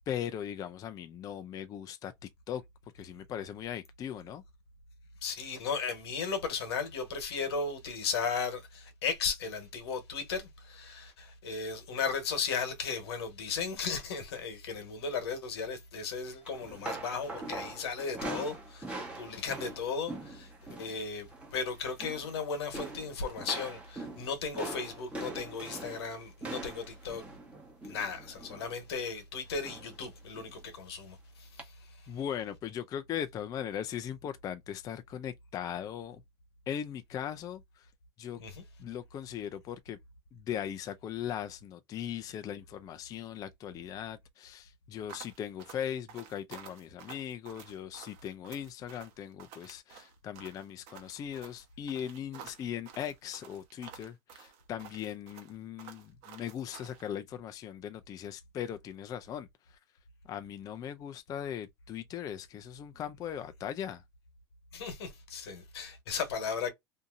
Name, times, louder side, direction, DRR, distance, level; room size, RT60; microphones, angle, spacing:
voice 1, 0.1-2.6 2.9-4.4 32.1-36.2 36.7-37.9 38.2-38.4 38.8-40.0 40.3-59.8 60.2-64.0, left 9 dB, 30° left, 0.3 m, -39 dB
voice 2, 5.2-27.2 27.8-32.1 38.4-38.6 64.7-66.7, left 5 dB, 85° left, 1.1 m, -36 dB
sound 1, 16.4-21.0 21.2-21.6 21.9-22.4 22.7-28.8 29.6-30.0 30.3-30.5 31.6-31.7, right 2 dB, 10° right, 1.0 m, -42 dB
sound 2, 45.1-57.1, right 8 dB, 55° right, 0.9 m, -51 dB
2.7 x 2.6 x 2.4 m
supercardioid pair, 120°, 13 cm